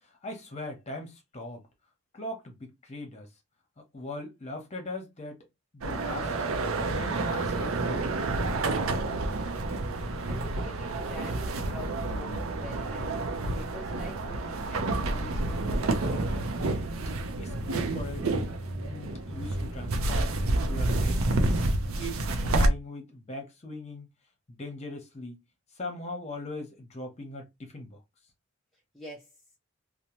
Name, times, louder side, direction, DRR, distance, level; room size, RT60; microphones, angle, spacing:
voice 1, 0.0-1.7 2.1-3.3 3.8-5.4 5.7-6.3 6.8-8.5 17.4-18.4 18.8-21.5 22.0-24.1 24.5-25.4 25.7-28.0, left 2 dB, 30° left, 0.8 m, -40 dB
sound 1, 5.8-22.7, right 2 dB, 70° right, 0.5 m, -29 dB
voice 2, 10.2-13.2 13.6-16.1 28.7-29.3, left 1 dB, ahead, 0.5 m, -46 dB
2.7 x 2.1 x 2.9 m
head